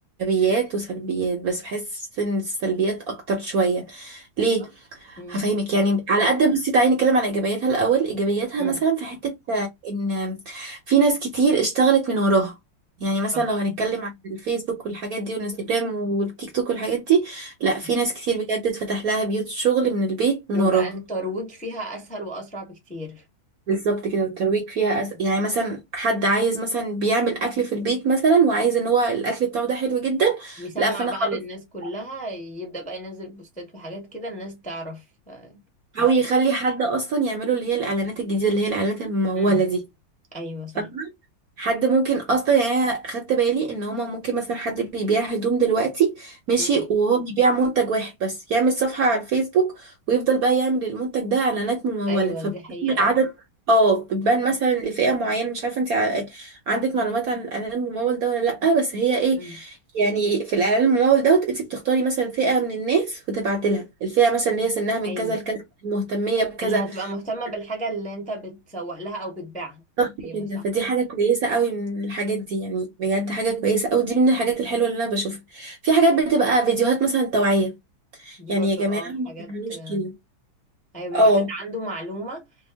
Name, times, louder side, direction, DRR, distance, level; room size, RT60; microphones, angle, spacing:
voice 1, 0.2-4.7 5.0-12.5 13.0-20.9 23.7-31.3 35.9-39.8 40.8-41.1 41.6-52.5 52.8-53.3 53.7-66.9 70.0-77.7 78.2-80.1 81.1-81.5, right 3 dB, 60° right, 1.0 m, -22 dB
voice 2, 20.5-23.2 30.6-35.6 36.0-36.1 39.3-39.6 40.3-40.9 46.6-46.8 52.1-53.0 59.3-59.6 65.0-65.4 66.6-69.8 70.2-70.6 78.4-80.1 80.9-82.5, right 1 dB, 5° left, 0.7 m, -34 dB
3.5 x 2.2 x 3.4 m
omnidirectional pair, 2.3 m